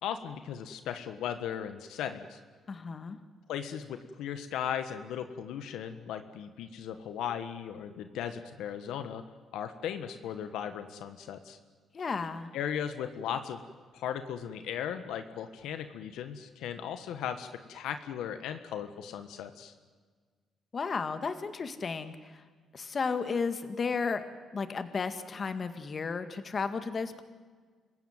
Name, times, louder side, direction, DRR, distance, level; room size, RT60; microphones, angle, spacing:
voice 1, 0.0-2.4 3.5-9.2 9.5-11.6 12.5-13.6 13.9-19.7, left 9 dB, 85° left, 8 dB, 1.4 m, -37 dB
voice 2, 2.7-3.2 11.9-12.5 20.7-22.4 22.7-24.3 24.5-27.2, left 5 dB, 40° left, 9 dB, 1.9 m, -33 dB
27.0 x 16.0 x 9.4 m, 1.5 s
cardioid pair, 90°, 0 cm